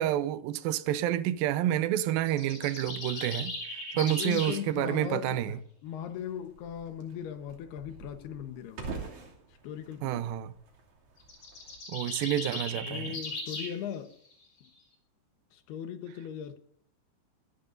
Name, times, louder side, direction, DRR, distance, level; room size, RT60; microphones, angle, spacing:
voice 1, 0.0-3.5 4.0-5.6 10.0-10.5 11.9-13.2, right 12 dB, 80° right, 2.2 m, -29 dB
sound 1, 2.3-4.6 11.2-13.7, left 2 dB, 40° left, 5.9 m, -38 dB
voice 2, 3.9-8.9 9.6-10.2 12.8-14.1 14.6-14.7 15.5-16.6, left 9 dB, 75° left, 3.1 m, -38 dB
sound 2, 5.8-11.8, right 4 dB, 50° right, 3.8 m, -46 dB
23.0 x 14.0 x 2.6 m
omnidirectional pair, 4.9 m